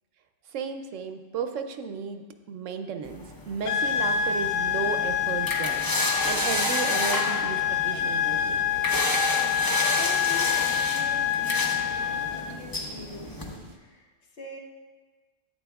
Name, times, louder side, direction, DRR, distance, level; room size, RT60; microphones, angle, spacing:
voice 1, 0.5-8.6, right 6 dB, 75° right, 7 dB, 0.9 m, -34 dB
sound 1, 3.0-13.6, left 1 dB, 25° left, 0.5 m, -31 dB
sound 2, 3.6-12.6, left 9 dB, 85° left, 0.4 m, -27 dB
sound 3, 3.8-13.8, right 2 dB, 50° right, 0.3 m, -47 dB
voice 2, 9.3-14.6, left 1 dB, 60° left, -2 dB, 1.3 m, -44 dB
11.0 x 8.5 x 2.3 m, 1.3 s
omnidirectional pair, 1.3 m